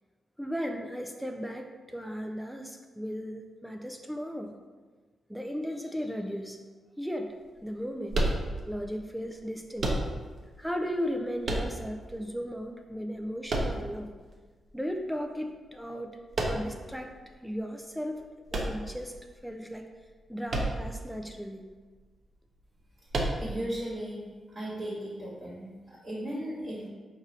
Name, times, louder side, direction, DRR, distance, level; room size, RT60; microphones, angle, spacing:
voice 1, 0.4-4.5 5.3-6.6 7.0-8.2 8.7-10.0 10.6-14.1 14.7-16.2 16.4-17.1 17.4-19.1 19.4-19.9 20.3-21.7, equal, ahead, 4 dB, 0.4 m, -36 dB
sound 1, 8.1-8.9 9.8-10.5 11.4-12.2 13.5-14.3 16.3-16.9 18.5-19.4 20.5-21.1 21.3-21.4 23.1-23.7, right 1 dB, 50° right, 0.7 m, -30 dB
voice 2, 23.4-24.2 24.5-26.9, right 1 dB, 30° right, -6 dB, 1.3 m, -36 dB
4.7 x 2.6 x 4.0 m, 1.4 s
cardioid pair, 90°, 0 cm